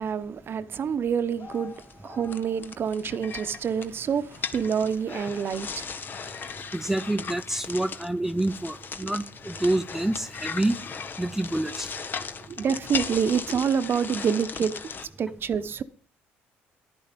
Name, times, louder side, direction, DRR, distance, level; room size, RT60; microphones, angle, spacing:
voice 1, 0.0-1.7 2.0-4.2 4.5-5.8 12.6-14.8 15.2-15.8, right 7 dB, 50° right, 1.0 m, -27 dB
sound 1, 1.4-15.1, left 6 dB, 45° left, 1.2 m, -37 dB
voice 2, 6.7-10.8 11.2-11.9, right 1 dB, 5° right, 0.7 m, -27 dB
11.0 x 11.0 x 5.2 m
supercardioid pair, 65°, 5 cm